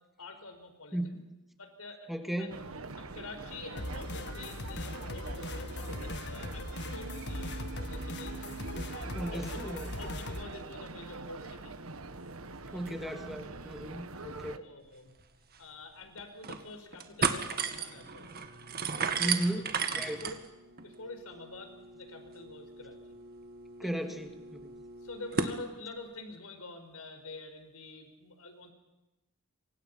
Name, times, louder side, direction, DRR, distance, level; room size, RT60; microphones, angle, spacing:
voice 1, 0.2-1.2 1.6-2.1 2.4-2.5 3.0-7.5 7.8-8.4 8.9-11.7 12.5-12.6 14.6-15.1 15.6-18.3 19.0-19.6 19.9-20.4 20.8-23.0 23.8-24.1 25.0-28.7, left 3 dB, 80° left, 7 dB, 5.2 m, -47 dB
voice 2, 2.1-2.5 9.1-9.9 12.7-14.6 19.2-19.7 19.9-20.2 23.8-24.7, right 1 dB, ahead, 5 dB, 2.5 m, -35 dB
sound 1, 2.5-14.6, right 3 dB, 70° right, 1.5 m, -44 dB
sound 2, 3.8-10.4, left 1 dB, 50° left, 1.8 m, -39 dB
sound 3, 15.2-15.3 15.6-15.7 16.2-16.6 16.9-25.6, right 5 dB, 45° right, 2.1 m, -35 dB
28.5 x 25.0 x 5.7 m, 1.0 s
head